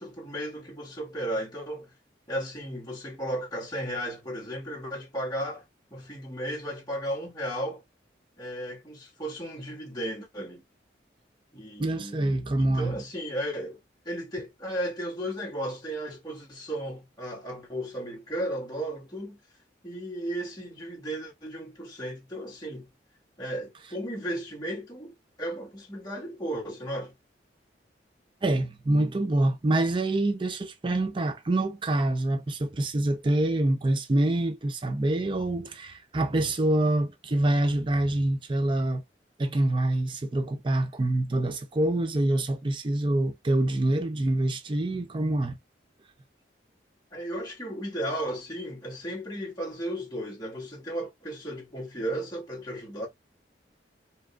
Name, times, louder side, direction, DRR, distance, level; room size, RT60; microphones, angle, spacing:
voice 1, 0.0-1.9 2.3-5.6 5.9-7.8 8.4-10.6 11.5-13.8 14.0-19.4 19.8-22.9 23.4-27.1 43.6-43.8 47.1-53.1, right 1 dB, 25° left, 1.6 m, -35 dB
voice 2, 11.8-13.0 28.4-39.0 39.4-45.6, right 1 dB, 25° right, 0.5 m, -26 dB
5.0 x 3.1 x 2.3 m
head